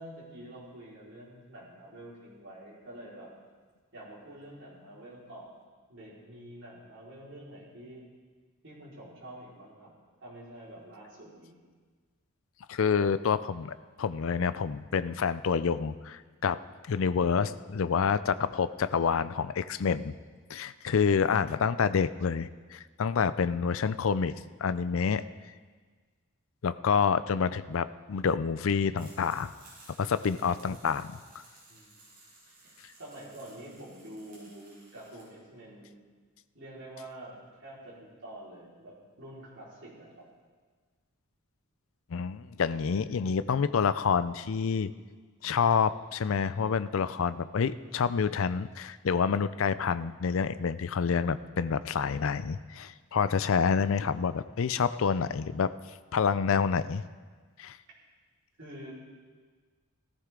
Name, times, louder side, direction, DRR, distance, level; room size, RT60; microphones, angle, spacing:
voice 1, 0.0-3.3 3.9-5.5 5.9-8.1 8.6-9.9 10.2-11.6 30.1-30.4 31.7-31.9 32.5-36.0 36.5-40.3 58.6-58.9, right 1 dB, 55° right, -7 dB, 4.5 m, -47 dB
voice 2, 12.7-16.6 16.9-20.1 20.5-24.3 24.6-25.2 26.6-29.5 30.0-31.2 42.1-44.9 45.4-55.7 56.1-57.0 57.6-57.8, left 6 dB, 60° left, 15 dB, 0.4 m, -28 dB
sound 1, 28.9-35.2, right 2 dB, 40° right, 5.5 m, -57 dB
17.5 x 13.5 x 3.8 m, 1.5 s
head